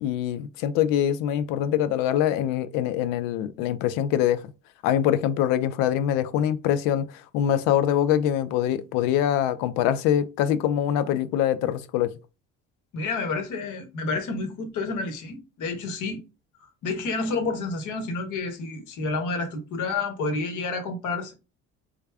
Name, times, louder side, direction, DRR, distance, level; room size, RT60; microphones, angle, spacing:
voice 1, 0.0-4.4 4.8-7.1 7.3-12.1, left 10 dB, 75° left, 0.5 m, -24 dB
voice 2, 12.9-16.2 16.8-21.3, left 3 dB, 60° left, 1.1 m, -29 dB
3.5 x 2.2 x 3.3 m
supercardioid pair, 80°, 34 cm